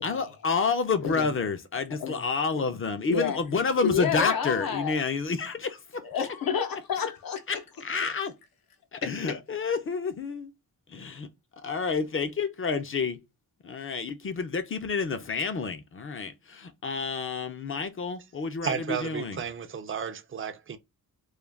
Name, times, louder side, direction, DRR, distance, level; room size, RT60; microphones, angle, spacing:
voice 1, 0.0-6.0 7.5-8.3 8.9-10.5 10.9-11.2 11.6-13.2 13.6-19.4, left 4 dB, 35° left, 0.5 m, -29 dB
voice 2, 3.1-3.4 3.8-5.0 6.0-7.4 8.0-8.1 9.2-9.3, left 7 dB, 75° left, 0.7 m, -29 dB
voice 3, 18.6-20.8, right 7 dB, 35° right, 0.4 m, -33 dB
2.3 x 2.2 x 3.2 m
wide cardioid pair, 130°, 35 cm